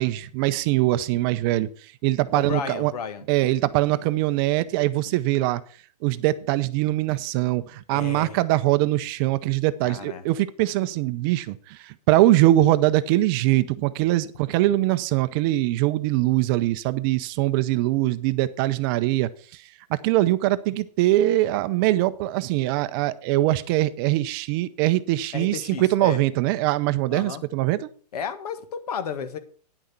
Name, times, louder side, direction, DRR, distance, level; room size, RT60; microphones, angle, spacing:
voice 1, 0.0-1.7 2.0-2.9 3.3-5.6 6.0-19.6 19.9-27.9, right 16 dB, 35° right, 14 dB, 0.6 m, -22 dB
voice 2, 2.3-3.2 7.9-8.4 9.8-10.2 25.3-26.2 27.1-27.4 28.1-29.4, left 7 dB, 70° left, 11 dB, 1.7 m, -33 dB
9.9 x 6.4 x 5.8 m, 0.43 s
hypercardioid pair, 140°, 21 cm